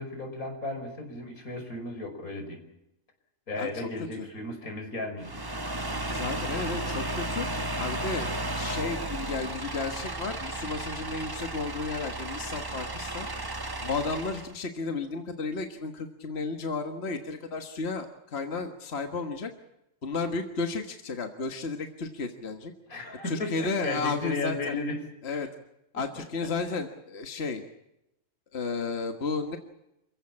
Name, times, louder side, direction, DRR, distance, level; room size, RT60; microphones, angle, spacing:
voice 1, 0.0-2.6 3.5-5.4 22.9-25.0 25.3-25.5 26.2-26.3, left 2 dB, 80° left, 5 dB, 5.9 m, -35 dB
voice 2, 3.6-3.9 4.2-4.3 6.1-7.5 7.8-13.3 13.8-19.5 20.0-22.7 23.3-24.8 25.2-25.5 25.9-27.6 28.5-29.6, left 4 dB, 50° left, 5 dB, 1.8 m, -33 dB
sound 1, 5.2-14.5, right 1 dB, 20° right, 1.0 m, -34 dB
28.0 x 16.0 x 8.6 m, 0.88 s
omnidirectional pair, 1.5 m